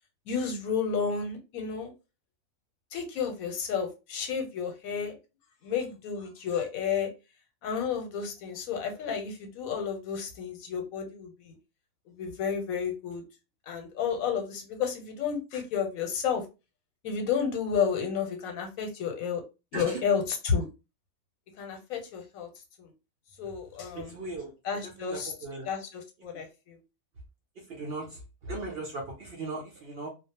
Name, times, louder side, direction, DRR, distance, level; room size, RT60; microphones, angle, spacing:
voice 1, 0.3-1.9 2.9-5.1 5.6-7.1 7.6-11.6 12.2-13.2 13.7-16.4 17.0-19.4 19.7-20.6 21.6-22.5 22.8-22.9 23.4-24.1 24.6-25.3 25.7-26.8, left 6 dB, 85° left, 4 dB, 1.1 m, -31 dB
voice 2, 23.9-24.5 25.0-25.7 26.3-26.4 27.6-30.1, right 2 dB, 60° right, 0 dB, 0.6 m, -38 dB
2.3 x 2.0 x 2.8 m, 0.28 s
omnidirectional pair, 1.4 m